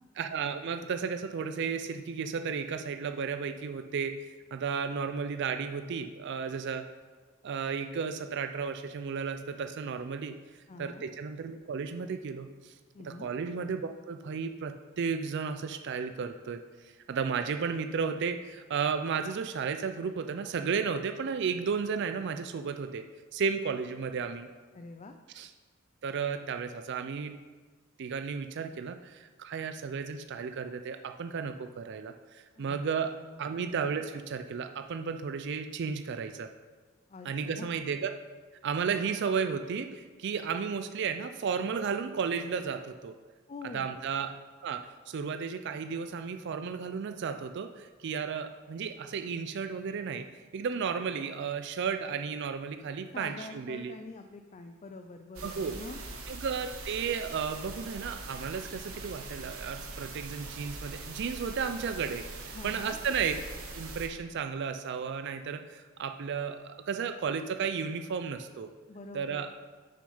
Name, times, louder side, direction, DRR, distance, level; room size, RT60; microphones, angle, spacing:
voice 1, 0.2-6.9 7.4-10.3 10.8-12.7 13.0-23.0 23.3-24.5 25.3-25.5 26.0-27.3 28.0-33.1 33.4-36.5 37.2-38.1 38.6-43.1 43.7-44.3 44.6-44.8 45.1-50.3 50.5-54.0 55.4-55.8 56.3-63.3 63.7-68.7 69.1-69.5, right 6 dB, 55° right, 8 dB, 0.4 m, -33 dB
voice 2, 10.7-11.1 12.9-13.3 24.7-25.2 32.6-32.8 33.2-33.5 37.1-37.7 43.5-44.0 53.1-56.0 62.5-63.0 68.9-69.6, left 3 dB, 35° left, 6 dB, 0.4 m, -45 dB
sound 1, 55.3-64.1, right 3 dB, 85° right, 1.1 m, -42 dB
6.8 x 6.4 x 5.5 m, 1.4 s
head